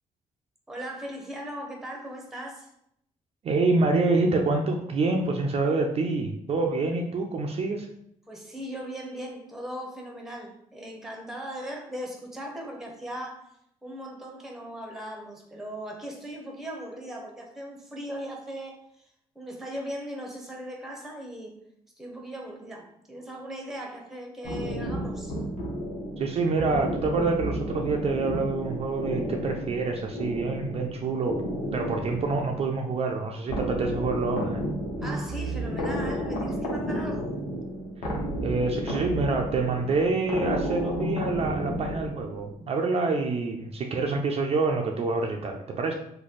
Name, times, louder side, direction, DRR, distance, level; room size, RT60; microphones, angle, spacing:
voice 1, 0.7-2.7 8.3-13.5 13.8-19.0 19.3-21.6 22.0-25.4 35.0-37.4, equal, 5° right, 1 dB, 0.9 m, -38 dB
voice 2, 3.4-7.9 26.2-31.4 31.7-34.7 38.4-45.9, right 3 dB, 50° right, 2 dB, 0.5 m, -27 dB
sound 1, 24.4-42.6, equal, 85° left, 0.9 m, -32 dB
3.1 x 2.2 x 4.1 m, 0.74 s
cardioid pair, 90°, 13 cm